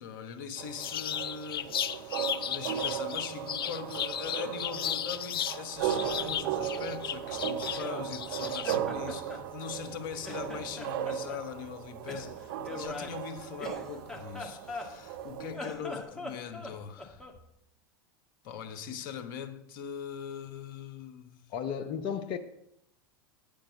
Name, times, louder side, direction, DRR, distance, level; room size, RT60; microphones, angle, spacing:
voice 1, 0.0-17.2 18.4-21.4, left 7 dB, 60° left, 1.1 m, -41 dB
sound 1, 0.6-15.6, right 9 dB, 65° right, 0.8 m, -37 dB
sound 2, 0.8-5.6 5.9-8.8, left 10 dB, 75° left, 0.4 m, -35 dB
Laughter, 5.8-8.1 8.4-10.0 10.2-11.4 12.1-15.2 15.5-17.4, left 2 dB, 5° left, 1.5 m, -43 dB
voice 2, 21.5-22.4, left 7 dB, 45° left, 0.8 m, -33 dB
8.6 x 5.2 x 7.2 m
hypercardioid pair, 90°, 12 cm